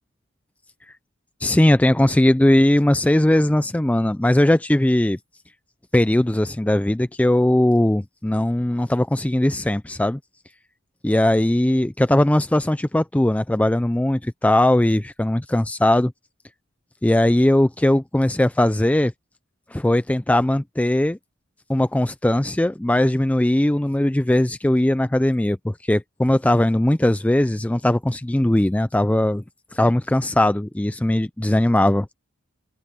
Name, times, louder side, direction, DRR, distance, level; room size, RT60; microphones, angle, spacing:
voice 1, 1.4-5.2 5.9-10.2 11.0-16.1 17.0-19.1 19.7-21.2 21.7-29.4 29.7-32.1, left 1 dB, 5° left, 0.3 m, -19 dB
head